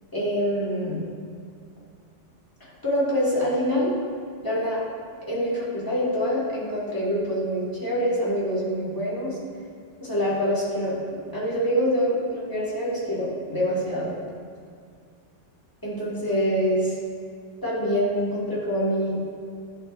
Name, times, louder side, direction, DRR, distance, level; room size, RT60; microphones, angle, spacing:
voice 1, 0.1-1.0 2.8-3.9 4.4-4.8 5.3-9.4 10.0-14.1 15.8-17.0 17.6-19.3, equal, 15° left, -8 dB, 1.8 m, -25 dB
10.5 x 5.2 x 2.6 m, 2.2 s
omnidirectional pair, 1.3 m